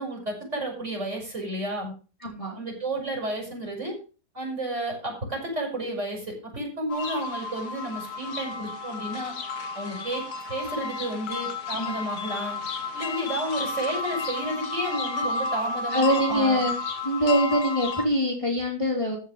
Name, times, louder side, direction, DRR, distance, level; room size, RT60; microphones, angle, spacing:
voice 1, 0.0-1.9 2.5-4.0 4.3-9.3 9.7-10.2 10.5-12.6 12.9-16.6, right 1 dB, 45° right, -1 dB, 6.1 m, -31 dB
voice 2, 2.2-2.6 11.8-11.9 15.9-16.7 17.0-19.2, equal, 20° left, -1 dB, 3.0 m, -24 dB
sound 1, 6.9-18.1, left 4 dB, 70° left, 1.8 m, -32 dB
14.5 x 5.5 x 6.5 m, 0.35 s
omnidirectional pair, 1.7 m